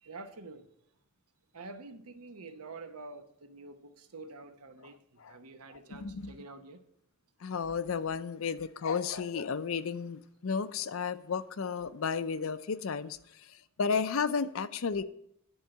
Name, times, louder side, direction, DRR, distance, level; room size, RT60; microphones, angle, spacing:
voice 1, 0.0-0.7 1.5-6.8, right 3 dB, 85° right, 1.0 m, -47 dB
voice 2, 5.7-6.3 7.4-13.2 13.8-15.0, left 5 dB, 65° left, 0.5 m, -33 dB
11.0 x 4.6 x 7.6 m
head